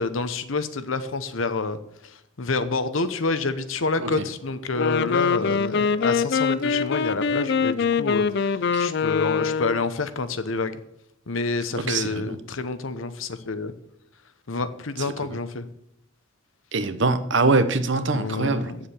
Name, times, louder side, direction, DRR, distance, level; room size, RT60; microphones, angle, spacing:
voice 1, 0.0-1.8 2.0-8.5 8.8-10.8 11.3-13.7 14.5-15.6 18.1-18.8, left 3 dB, 80° left, 11 dB, 1.0 m, -28 dB
Wind instrument woodwind instrument, 4.7-9.9, left 5 dB, 55° left, 0.4 m, -24 dB
voice 2, 11.8-12.4 15.0-15.4 16.7-18.7, right 3 dB, 65° right, 12 dB, 0.9 m, -24 dB
8.8 x 7.3 x 7.2 m, 0.77 s
head